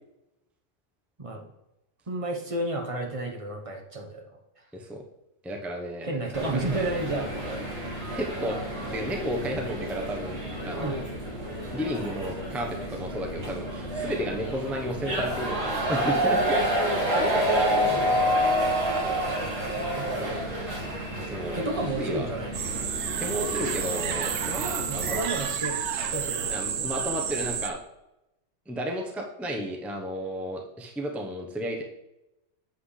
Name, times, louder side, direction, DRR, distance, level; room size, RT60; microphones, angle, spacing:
voice 1, 2.1-4.4 6.0-7.3 10.8-11.0 17.1-18.6 19.2-20.5 21.5-22.5 24.9-26.9, right 2 dB, 25° right, 2 dB, 1.1 m, -32 dB
voice 2, 4.7-5.0 5.4-6.4 8.1-11.0 11.7-17.4 21.2-21.6 22.0-22.3 23.2-25.3 26.4-27.8 28.7-31.8, equal, ahead, 1 dB, 0.8 m, -33 dB
sound 1, 6.3-25.2, equal, 55° right, 2.5 m, -29 dB
sound 2, 22.5-27.7, right 7 dB, 80° right, 1.2 m, -30 dB
7.9 x 7.8 x 3.3 m, 0.92 s
omnidirectional pair, 1.6 m